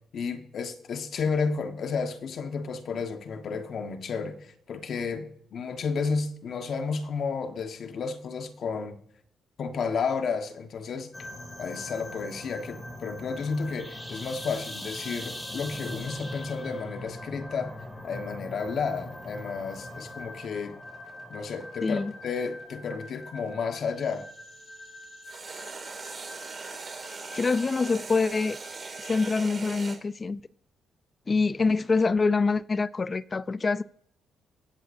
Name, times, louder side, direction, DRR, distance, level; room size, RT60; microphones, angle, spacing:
voice 1, 0.1-9.0 9.6-11.3 11.6-17.8 18.0-20.8 21.3-24.3, left 5 dB, 60° left, 1.3 m, -32 dB
sound 1, 11.1-29.3, left 1 dB, 15° left, 2.6 m, -42 dB
sound 2, 19.0-24.1 25.2-30.0, right 4 dB, 35° right, 2.3 m, -41 dB
voice 2, 21.8-22.1 27.3-28.6 29.0-30.4 31.3-33.8, left 4 dB, 30° left, 0.3 m, -25 dB
23.0 x 7.8 x 2.6 m
cardioid pair, 90°, 0 cm